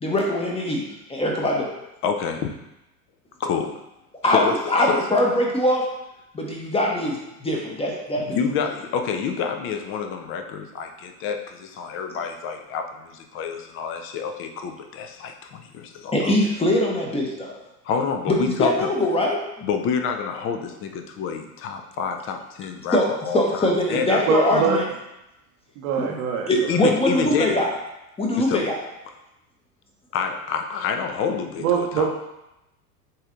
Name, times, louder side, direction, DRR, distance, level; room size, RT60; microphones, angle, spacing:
voice 1, 0.0-1.7 4.2-5.8 6.3-8.4 16.1-17.5 18.3-19.4 22.9-23.1 23.3-24.8 26.0-26.2 26.5-27.7 28.2-28.8, left 1 dB, 10° left, -1 dB, 0.9 m, -22 dB
voice 2, 2.0-2.5 3.4-3.8 4.2-5.0 8.1-16.3 17.8-18.9 19.6-24.3 26.5-27.6 28.5-28.7 30.1-32.1, left 6 dB, 30° left, 5 dB, 0.5 m, -28 dB
voice 3, 24.3-24.8 25.8-26.8 31.6-32.1, right 6 dB, 60° right, -1 dB, 0.9 m, -23 dB
7.8 x 2.7 x 2.5 m, 0.91 s
hypercardioid pair, 90°, 47 cm